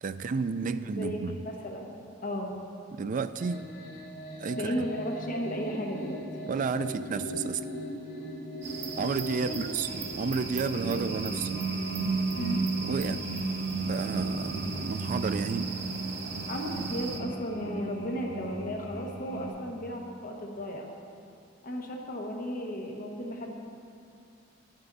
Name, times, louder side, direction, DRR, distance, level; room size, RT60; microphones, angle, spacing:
voice 1, 0.0-1.4 2.9-3.7 4.4-4.8 6.4-7.6 9.0-11.6 12.9-13.2 13.8-15.7, right 5 dB, 45° right, 12 dB, 0.3 m, -32 dB
voice 2, 0.7-1.9 2.2-2.5 4.5-6.3 9.5-9.7 12.3-12.6 16.5-20.9 21.6-23.5, equal, 45° left, 1 dB, 1.2 m, -35 dB
sound 1, 3.4-19.5, right 2 dB, 85° left, 2.3 m, -35 dB
sound 2, 8.6-17.2, right 5 dB, 60° right, 0.9 m, -39 dB
11.0 x 9.0 x 4.0 m, 2.6 s
head